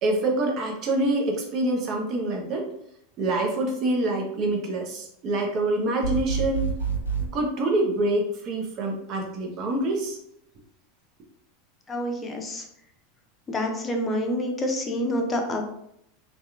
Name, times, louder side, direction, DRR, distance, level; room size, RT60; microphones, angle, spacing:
voice 1, 0.0-2.7 3.2-6.7 7.1-10.2, right 2 dB, 45° right, 1 dB, 0.7 m, -26 dB
sound 1, 6.0-7.3, right 6 dB, 90° left, 0.4 m, -27 dB
voice 2, 11.9-12.6 13.5-15.6, left 1 dB, 20° left, 2 dB, 0.6 m, -27 dB
2.8 x 2.3 x 2.4 m, 0.74 s
hypercardioid pair, 90°, 0 cm